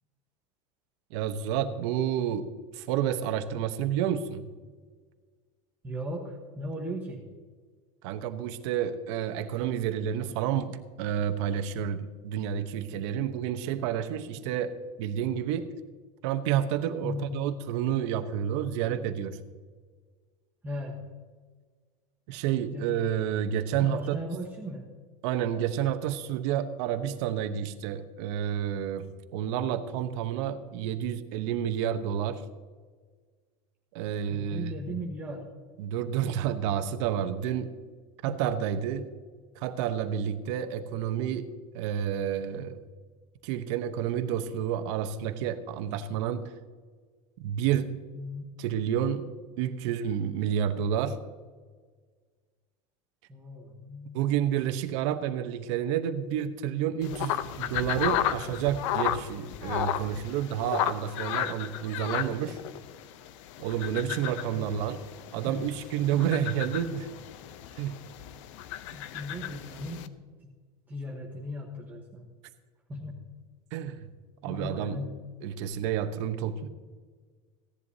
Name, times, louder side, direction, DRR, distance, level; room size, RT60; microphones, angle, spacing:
voice 1, 1.1-4.5 8.0-15.7 16.2-19.4 22.3-24.2 25.2-29.1 29.3-32.4 33.9-35.0 35.8-37.7 38.2-39.1 39.6-42.8 43.4-46.5 47.4-48.0 48.6-49.3 49.6-51.2 54.1-62.6 63.6-65.0 65.3-67.1 67.8-68.0 73.7-74.0 74.4-75.0 75.4-76.7, right 9 dB, 60° right, 1.0 m, -30 dB
voice 2, 5.8-7.3 17.0-17.3 20.6-21.1 22.7-23.0 23.8-24.9 34.3-35.5 38.3-38.6 48.1-48.4 53.3-54.2 64.5-64.7 65.5-65.8 66.1-66.4 66.7-66.8 68.9-70.6 70.9-72.3 72.9-73.2 74.5-75.1, equal, 10° right, 1.1 m, -38 dB
sound 1, 57.0-70.1, left 11 dB, 70° left, 0.7 m, -34 dB
16.5 x 11.0 x 2.8 m
supercardioid pair, 160°, 17 cm